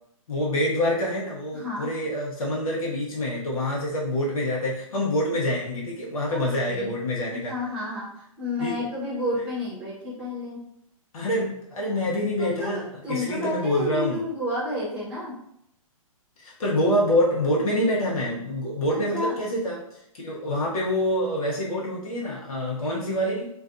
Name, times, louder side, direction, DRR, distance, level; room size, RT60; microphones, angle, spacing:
voice 1, 0.3-7.5 8.6-8.9 11.1-14.2 16.4-23.5, left 1 dB, 75° left, -4 dB, 0.8 m, -26 dB
voice 2, 1.5-1.9 6.3-7.0 7.3-10.7 12.4-15.4 18.9-19.4, left 1 dB, 5° right, -8 dB, 0.8 m, -31 dB
2.4 x 2.3 x 2.5 m, 0.77 s
hypercardioid pair, 140°, 18 cm